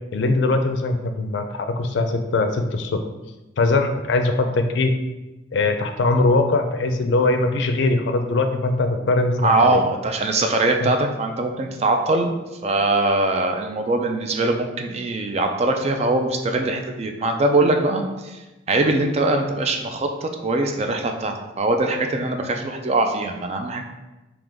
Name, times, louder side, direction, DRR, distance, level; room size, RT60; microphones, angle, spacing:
voice 1, 0.1-3.0 3.6-4.9 5.5-9.8 10.8-10.9, left 2 dB, 70° left, 6 dB, 0.4 m, -21 dB
voice 2, 9.4-12.3 12.6-18.4 18.7-23.8, right 2 dB, 35° right, 4 dB, 0.4 m, -22 dB
3.7 x 3.0 x 3.4 m, 1.1 s
head